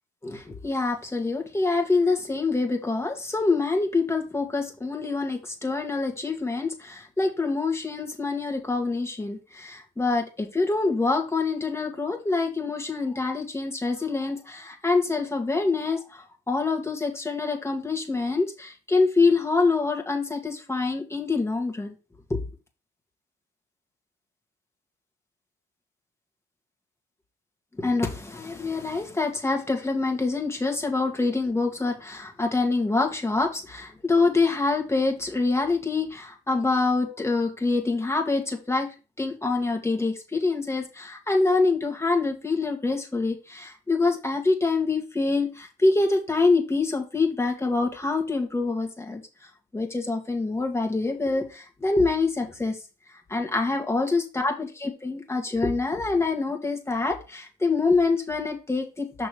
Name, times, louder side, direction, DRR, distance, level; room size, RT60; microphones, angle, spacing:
voice 1, 0.2-21.9 22.3-22.4 27.8-38.9 39.2-49.2 49.7-52.8 53.3-59.3, left 3 dB, 15° left, 3 dB, 1.9 m, -25 dB
6.2 x 3.9 x 4.9 m, 0.31 s
cardioid pair, 90°, 20 cm